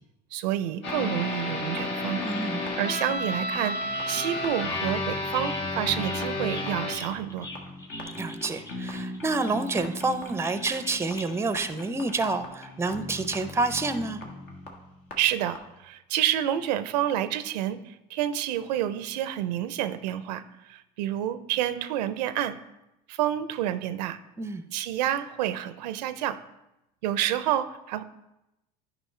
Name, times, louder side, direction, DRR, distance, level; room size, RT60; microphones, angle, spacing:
voice 1, 0.3-2.2 2.6-7.5 15.2-22.6 23.1-24.2 24.7-26.4 27.0-28.0, right 11 dB, 90° right, 12 dB, 0.5 m, -29 dB
sound 1, 0.8-15.1 15.5-15.6, left 2 dB, 65° left, 1.6 m, -34 dB
voice 2, 2.2-2.7 8.2-14.2 24.4-24.6, right 3 dB, 10° right, 11 dB, 0.5 m, -28 dB
sound 2, 2.3-4.2 4.4-11.5 12.2-12.3 12.5-12.6, left 1 dB, 15° left, 1.4 m, -44 dB
9.9 x 5.0 x 3.2 m, 0.92 s
supercardioid pair, 90°, 21 cm